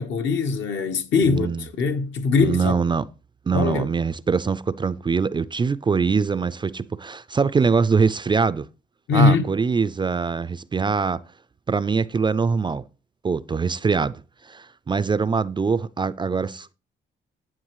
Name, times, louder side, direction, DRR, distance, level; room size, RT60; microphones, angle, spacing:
voice 1, 0.0-2.8 3.5-3.9 9.1-9.4, left 4 dB, 70° left, 1.3 m, -21 dB
voice 2, 1.2-1.6 2.4-3.0 3.5-8.6 9.1-11.2 11.7-12.8 13.2-14.1 14.4-16.7, right 5 dB, 25° right, 0.4 m, -23 dB
10.0 x 9.0 x 3.1 m
cardioid pair, 90°, 20 cm